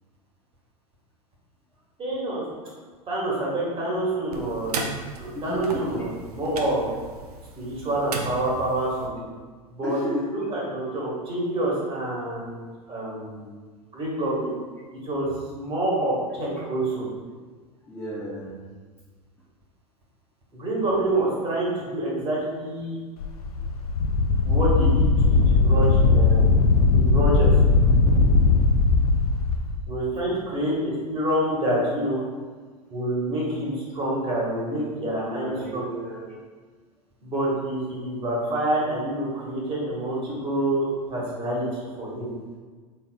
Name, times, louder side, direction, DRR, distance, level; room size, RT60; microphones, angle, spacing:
voice 1, 2.0-2.4 3.1-4.9 5.2-6.9 7.6-9.3 9.7-13.5 13.9-14.5 15.0-17.1 20.5-23.0 24.5-27.5 29.9-32.2 32.9-35.8 37.2-42.3, right 1 dB, 30° right, -5 dB, 1.5 m, -27 dB
sound 1, 4.3-9.1, right 3 dB, 85° right, 0.5 m, -36 dB
voice 2, 5.3-6.0 9.8-10.3 17.9-18.6 35.2-36.3, left 1 dB, 10° left, -7 dB, 0.7 m, -33 dB
Wind, 23.2-29.6, left 3 dB, 80° left, 0.4 m, -19 dB
4.3 x 3.7 x 2.2 m, 1.4 s
hypercardioid pair, 95°, 19 cm